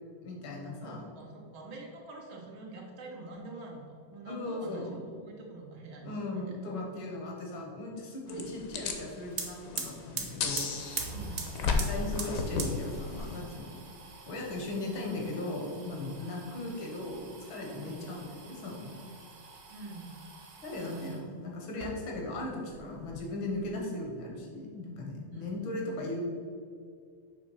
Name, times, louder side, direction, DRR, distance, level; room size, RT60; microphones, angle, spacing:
voice 1, 0.2-1.1 4.3-5.0 6.0-10.8 11.7-13.7 14.3-19.0 20.6-26.2, left 2 dB, 80° left, 0 dB, 2.0 m, -38 dB
voice 2, 0.8-3.8 4.1-6.6 8.3-8.5 11.1-11.5 16.2-16.4 17.8-18.0 19.7-20.2 20.8-21.3 25.3-25.6, right 3 dB, 85° right, -1 dB, 2.0 m, -46 dB
sound 1, 8.3-13.4, left 4 dB, 60° left, 0.9 m, -34 dB
sound 2, 9.0-9.1 9.3-21.2 21.7-22.4 22.7-23.7, right 4 dB, 50° right, 1.2 m, -43 dB
7.1 x 3.1 x 6.1 m, 2.2 s
omnidirectional pair, 2.1 m